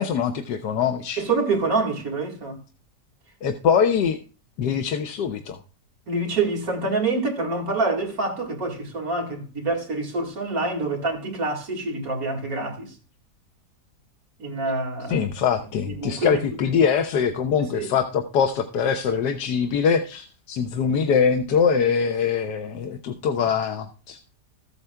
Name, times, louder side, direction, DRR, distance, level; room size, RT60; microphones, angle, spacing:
voice 1, 0.0-1.2 3.4-4.2 4.6-5.6 15.1-24.2, left 6 dB, 85° left, 1.4 m, -23 dB
voice 2, 1.2-2.6 6.1-12.9 14.4-15.2 15.9-16.4 17.6-17.9, right 3 dB, 55° right, 2.4 m, -26 dB
14.5 x 8.2 x 2.2 m
omnidirectional pair, 1.8 m